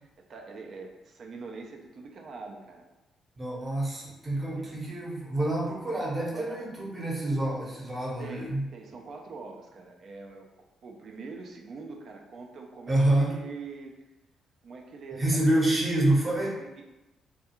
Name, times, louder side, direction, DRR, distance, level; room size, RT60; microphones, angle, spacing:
voice 1, 0.3-2.9 4.5-4.7 6.3-6.6 8.2-14.0 14.6-15.7 16.4-16.8, right 4 dB, 60° right, 2 dB, 0.4 m, -44 dB
voice 2, 3.4-8.6 12.9-13.4 15.2-16.5, right 1 dB, 25° right, -4 dB, 0.8 m, -27 dB
2.3 x 2.3 x 2.9 m, 1.0 s
cardioid pair, 90°, 0 cm